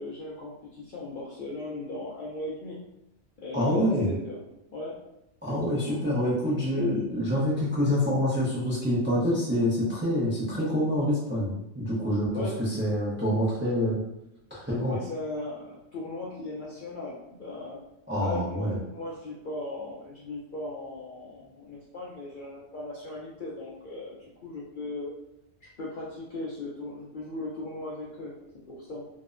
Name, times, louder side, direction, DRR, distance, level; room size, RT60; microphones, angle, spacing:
voice 1, 0.0-2.8 3.4-4.4 4.7-5.0 5.7-6.0 12.3-12.6 12.9-13.0 14.8-17.8 18.2-24.2 24.4-25.1 25.6-28.3 28.7-29.1, left 2 dB, 60° left, -5 dB, 0.5 m, -37 dB
voice 2, 3.5-4.1 5.4-14.0 14.5-15.0 18.1-18.8, equal, 20° right, -7 dB, 0.3 m, -26 dB
2.6 x 2.1 x 2.4 m, 0.84 s
omnidirectional pair, 1.3 m